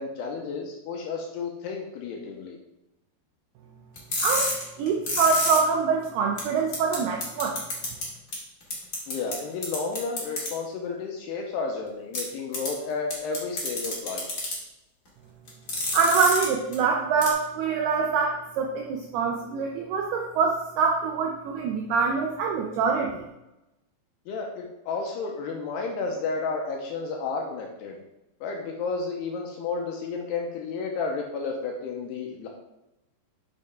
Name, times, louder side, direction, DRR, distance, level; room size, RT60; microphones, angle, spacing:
voice 1, 0.0-2.6 9.1-14.2 24.3-28.0 28.4-32.5, left 4 dB, 80° left, 1 dB, 2.6 m, -32 dB
sound 1, 3.9-5.6 6.0-6.1 6.4-6.5 6.7-6.9 7.2-8.0 8.3-8.4 8.7-9.3 9.6-10.5 12.1-12.2 12.5-12.7 13.1-14.5 15.5-16.4 16.7-16.8 17.2-17.3, left 2 dB, 40° left, 1.4 m, -28 dB
voice 2, 4.8-7.6 15.9-23.2, right 5 dB, 80° right, 1 dB, 2.3 m, -25 dB
7.6 x 6.5 x 3.5 m, 0.93 s
omnidirectional pair, 5.3 m